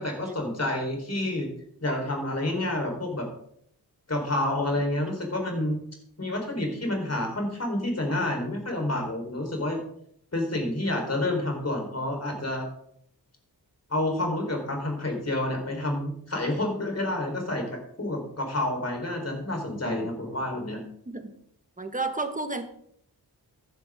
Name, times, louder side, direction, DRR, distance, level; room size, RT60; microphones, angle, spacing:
voice 1, 0.0-1.5 1.8-3.3 4.1-5.8 6.2-9.8 10.3-12.7 13.9-20.8, left 1 dB, 40° left, 2 dB, 4.1 m, -29 dB
voice 2, 21.8-22.6, right 3 dB, 20° right, 7 dB, 1.5 m, -31 dB
14.0 x 10.5 x 3.7 m, 0.68 s
wide cardioid pair, 95°, 39 cm